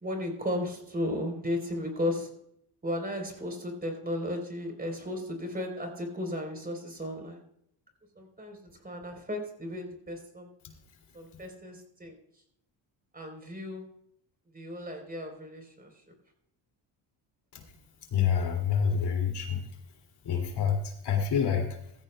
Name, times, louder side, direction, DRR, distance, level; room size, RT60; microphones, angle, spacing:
voice 1, 0.0-2.3 2.8-7.4 8.2-8.6 8.8-10.5 11.1-12.2 13.1-13.8 14.5-15.9, left 1 dB, 20° right, 4 dB, 3.6 m, -35 dB
voice 2, 18.1-19.7 20.2-21.9, left 7 dB, 60° left, 3 dB, 2.5 m, -27 dB
16.0 x 14.5 x 2.2 m, 0.72 s
cardioid pair, 90°, 46 cm